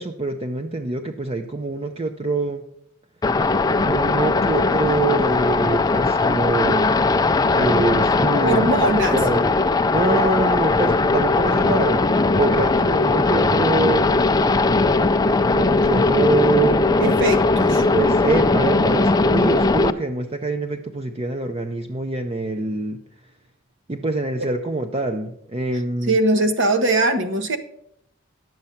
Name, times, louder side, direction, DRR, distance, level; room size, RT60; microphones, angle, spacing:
voice 1, 0.0-2.6 3.8-6.9 7.5-8.7 9.1-9.5 9.9-14.2 15.5-16.8 17.9-23.0 23.9-26.1, right 2 dB, 30° right, 6 dB, 0.6 m, -24 dB
sound 1, 3.2-19.9, left 3 dB, 20° left, 0.4 m, -19 dB
voice 2, 8.4-9.2 17.0-17.8 26.1-27.6, right 2 dB, 60° right, 8 dB, 1.2 m, -20 dB
10.5 x 7.8 x 5.7 m, 0.74 s
head